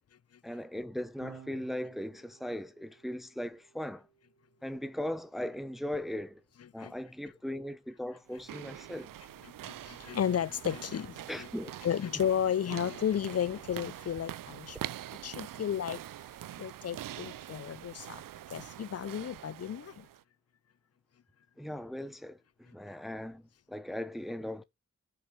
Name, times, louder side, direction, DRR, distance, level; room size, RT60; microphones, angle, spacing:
voice 1, 0.4-4.1 4.6-6.4 6.7-9.1 11.3-11.7 15.2-15.3 21.6-24.6, left 1 dB, ahead, 1.0 m, -38 dB
Electric guitar / Bass guitar, 1.2-7.6, right 8 dB, 70° right, 2.4 m, -59 dB
sound 1, 8.3-20.2, right 12 dB, 85° right, 0.5 m, -44 dB
voice 2, 9.6-11.5 11.8-14.8 15.2-16.0 16.6-18.2 18.5-20.1, left 9 dB, 50° left, 0.6 m, -33 dB
11.5 x 7.5 x 3.3 m
cardioid pair, 50°, 32 cm